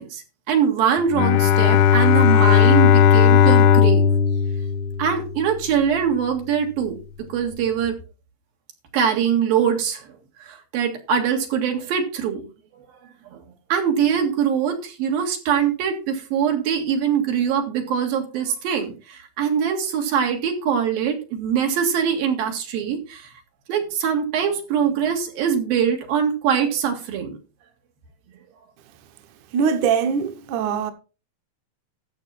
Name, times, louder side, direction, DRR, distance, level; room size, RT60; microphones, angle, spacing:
voice 1, 0.0-4.1 5.0-7.0 7.3-8.0 8.9-10.1 10.4-12.4 12.7-12.9 13.3-13.4 13.7-23.3 23.7-27.4, right 7 dB, 85° right, 3.8 m, -23 dB
Bowed string instrument, 1.1-5.5, left 8 dB, 75° left, 2.0 m, -16 dB
voice 2, 29.5-30.9, right 6 dB, 70° right, 2.2 m, -22 dB
13.0 x 7.4 x 4.2 m
omnidirectional pair, 4.0 m